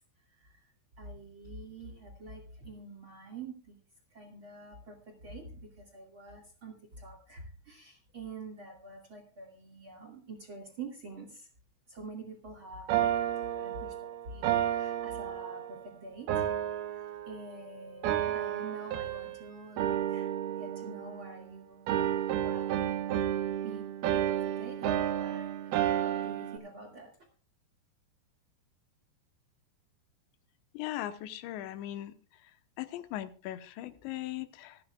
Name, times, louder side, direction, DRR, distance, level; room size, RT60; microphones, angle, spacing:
voice 1, 1.0-3.8 4.1-11.5 11.9-16.5 16.9-20.3 20.6-22.1 22.3-22.9 23.6-23.9 24.1-27.1, right 3 dB, 45° right, 3 dB, 1.8 m, -47 dB
sound 1, 12.9-15.8 16.3-17.6 18.0-19.4 19.8-21.5 21.9-26.6, right 11 dB, 75° right, 2.7 m, -31 dB
voice 2, 30.7-32.1 32.8-34.8, left 13 dB, 85° left, 12 dB, 3.2 m, -39 dB
26.0 x 9.5 x 2.3 m, 0.40 s
omnidirectional pair, 5.0 m